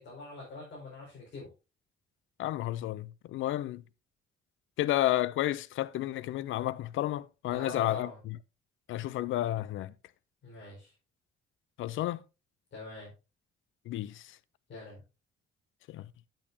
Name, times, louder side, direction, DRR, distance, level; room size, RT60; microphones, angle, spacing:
voice 1, 0.0-1.5 7.5-8.2 10.4-10.9 12.7-13.1 14.7-15.0, left 2 dB, 65° left, 5.2 m, -44 dB
voice 2, 2.4-3.8 4.8-8.4 8.9-9.9 11.8-12.2 13.9-14.4 15.9-16.1, left 14 dB, 80° left, 0.6 m, -31 dB
10.0 x 9.0 x 2.8 m
cardioid pair, 90°, 20 cm